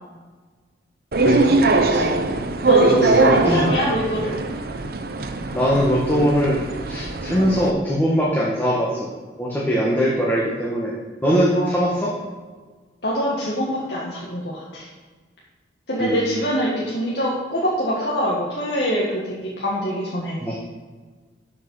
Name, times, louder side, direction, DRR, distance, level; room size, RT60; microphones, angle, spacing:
sound 1, 1.1-7.7, right 3 dB, 55° right, 0.8 m, -21 dB
voice 1, 1.2-2.0 2.9-3.7 5.5-9.1 9.4-10.9 11.2-12.1 16.0-16.4 20.4-20.6, equal, 10° left, -5 dB, 1.5 m, -21 dB
voice 2, 2.7-4.4 11.5-12.0 13.0-14.9 15.9-20.6, equal, 70° left, -5 dB, 1.8 m, -24 dB
12.5 x 5.7 x 5.7 m, 1.4 s
head